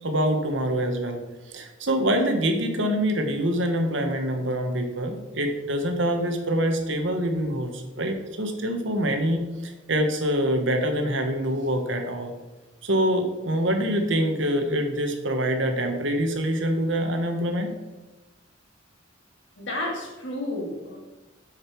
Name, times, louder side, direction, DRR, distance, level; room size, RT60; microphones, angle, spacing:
voice 1, 0.0-12.3 12.8-17.7, equal, 75° right, 5 dB, 1.2 m, -25 dB
voice 2, 19.6-21.0, left 1 dB, 75° left, -2 dB, 2.5 m, -31 dB
6.8 x 6.6 x 4.5 m, 1.1 s
head